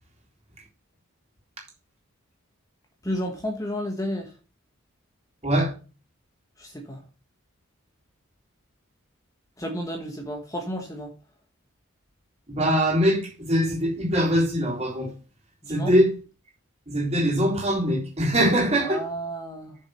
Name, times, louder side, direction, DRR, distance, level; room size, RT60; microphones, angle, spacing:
voice 1, 3.0-4.3 6.6-7.0 9.6-11.1 15.6-15.9 18.8-19.8, equal, 15° left, 1.2 m, -32 dB
voice 2, 12.5-15.1 15.7-16.1 16.9-19.0, equal, 30° right, 3.7 m, -22 dB
7.3 x 6.5 x 6.5 m
head